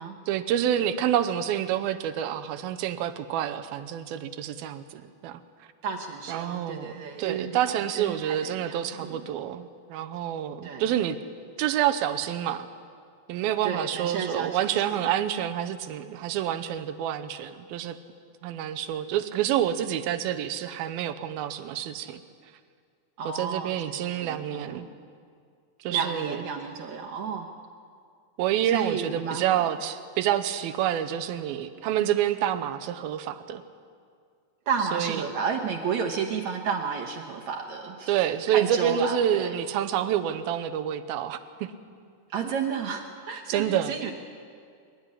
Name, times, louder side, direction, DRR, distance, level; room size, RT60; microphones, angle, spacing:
voice 1, 0.3-5.4 6.3-11.2 11.6-12.7 13.3-18.0 18.4-22.2 23.4-24.9 25.8-26.4 28.4-33.6 34.9-35.3 38.1-41.7 43.5-43.9, right 10 dB, 90° right, 10 dB, 2.6 m, -28 dB
voice 2, 5.8-9.3 10.6-10.9 13.6-14.6 23.2-24.9 25.9-27.5 28.6-29.6 34.7-38.1 38.5-39.5 42.3-44.1, right 6 dB, 65° right, 2 dB, 2.0 m, -32 dB
23.0 x 12.0 x 9.9 m, 2.2 s
omnidirectional pair, 4.2 m